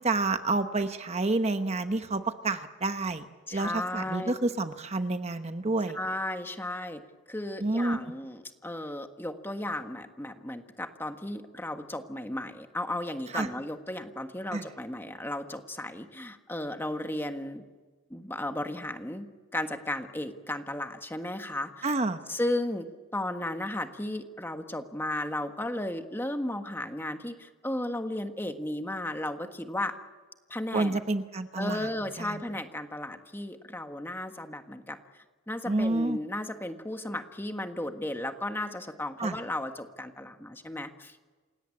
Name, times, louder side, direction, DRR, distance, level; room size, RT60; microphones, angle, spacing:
voice 1, 0.0-3.3 3.5-6.0 7.6-8.0 13.3-13.5 14.5-14.6 21.8-22.2 30.7-31.9 32.2-32.4 35.7-36.2 39.2-39.4, right 2 dB, 35° right, 8 dB, 1.0 m, -29 dB
voice 2, 3.5-4.3 5.9-7.0 7.3-17.6 18.1-19.3 19.5-21.9 22.3-22.9 23.1-30.0 30.5-31.0 31.6-35.0 35.5-41.2, left 1 dB, 10° left, 6 dB, 1.5 m, -34 dB
28.5 x 17.5 x 8.6 m, 1.3 s
head